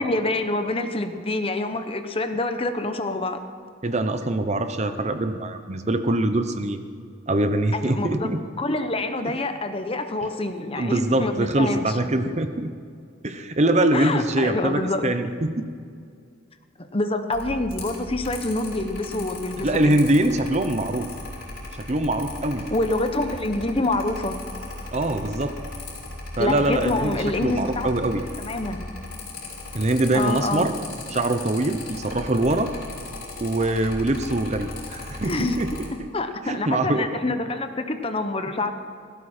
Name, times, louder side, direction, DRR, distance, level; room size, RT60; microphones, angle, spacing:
voice 1, 0.0-3.4 7.7-8.3 8.6-11.8 13.9-15.0 16.8-19.9 22.7-24.4 26.4-27.9 28.4-28.8 30.1-30.7 35.2-35.6 36.1-38.7, left 2 dB, 30° left, 8 dB, 0.9 m, -26 dB
voice 2, 3.8-6.8 7.3-8.4 9.3-9.4 10.7-12.7 13.2-15.7 19.6-21.1 21.8-22.7 24.9-25.6 26.4-27.1 27.4-28.2 29.7-30.7 31.1-32.7 33.4-36.1 36.4-37.1, right 1 dB, 35° right, 8 dB, 0.8 m, -23 dB
Mechanical fan, 17.3-35.9, left 2 dB, 85° left, 5.1 m, -37 dB
17.5 x 16.0 x 4.4 m, 2.2 s
head